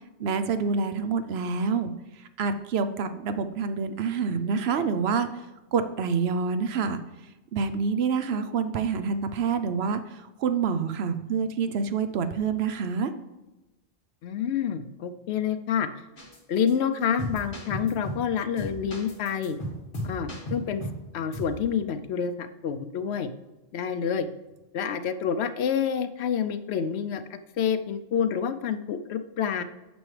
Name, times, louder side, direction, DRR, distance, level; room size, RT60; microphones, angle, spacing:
voice 1, 0.2-1.9 2.2-5.3 5.7-7.0 7.5-13.1, right 5 dB, 70° right, 10 dB, 0.8 m, -27 dB
voice 2, 14.2-15.9 16.5-19.6 20.0-20.8 21.1-23.3 23.7-24.3 24.7-29.6, left 7 dB, 75° left, 11 dB, 0.8 m, -28 dB
sound 1, 16.2-16.4 16.7-16.8 17.2-18.3 18.6-21.0 21.3-21.6, equal, 50° left, 2.1 m, -35 dB
9.1 x 6.3 x 3.2 m, 1.0 s
omnidirectional pair, 1.1 m